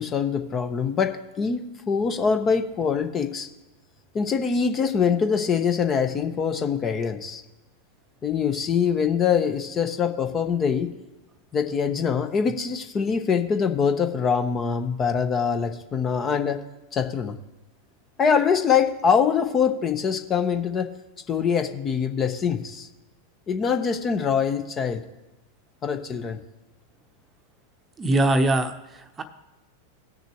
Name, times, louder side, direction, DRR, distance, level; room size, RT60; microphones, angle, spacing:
voice 1, 0.0-3.5 4.1-7.4 8.2-10.9 11.5-16.6 16.9-17.3 18.2-20.9 21.3-22.9 23.5-25.0 25.8-26.4, left 6 dB, 30° left, 7 dB, 1.0 m, -24 dB
voice 2, 28.0-29.2, right 1 dB, 20° right, 7 dB, 0.9 m, -22 dB
18.5 x 6.7 x 3.1 m, 1.0 s
hypercardioid pair, 95°, 0 cm